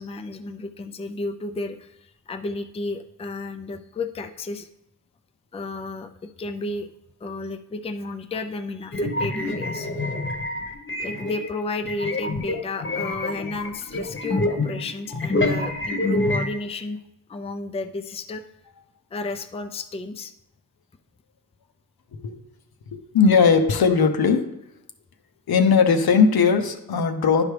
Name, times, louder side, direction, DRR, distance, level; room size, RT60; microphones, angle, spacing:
voice 1, 0.0-4.7 5.5-6.9 7.2-9.9 11.0-17.0 17.3-18.4 19.1-20.3, left 2 dB, 15° left, 7 dB, 0.4 m, -32 dB
sound 1, 8.9-11.5 11.8-16.5, left 2 dB, 35° left, 1.0 m, -26 dB
voice 2, 23.1-24.5 25.5-27.4, left 5 dB, 80° left, 6 dB, 0.8 m, -18 dB
10.5 x 5.0 x 3.3 m, 0.86 s
wide cardioid pair, 95°, 36 cm